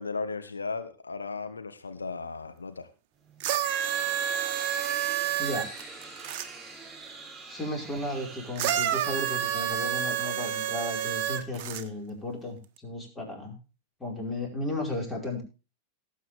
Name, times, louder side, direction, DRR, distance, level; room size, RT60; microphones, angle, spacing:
voice 1, 0.0-2.9, left 4 dB, 75° left, 9 dB, 1.2 m, -35 dB
sound 1, 3.2-11.1, right 3 dB, 10° right, 4.7 m, -45 dB
sound 2, 3.4-6.5 8.6-11.8 12.8-12.9, right 10 dB, 45° right, 1.3 m, -29 dB
voice 2, 7.5-13.6 14.0-15.4, left 1 dB, 15° left, 1 dB, 4.9 m, -34 dB
18.0 x 8.3 x 3.4 m, 0.31 s
figure-of-eight pair, 90°, 0 cm